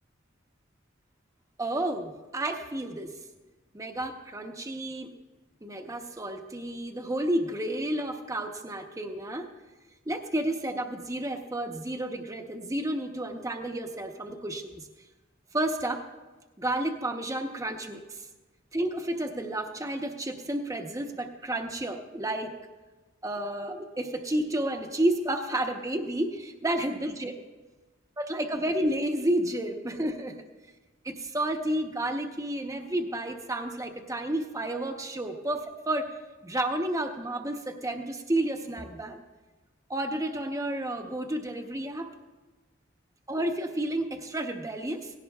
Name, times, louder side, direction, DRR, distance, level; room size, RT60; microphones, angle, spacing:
voice 1, 1.6-3.1 3.7-5.1 5.6-9.5 10.1-14.8 15.5-16.0 16.6-18.0 18.7-22.5 23.2-27.3 28.2-30.4 31.0-36.1 36.4-39.2 39.9-42.1 43.3-45.1, right 1 dB, 15° right, 5 dB, 0.9 m, -31 dB
18.0 x 16.5 x 2.3 m, 1.2 s
head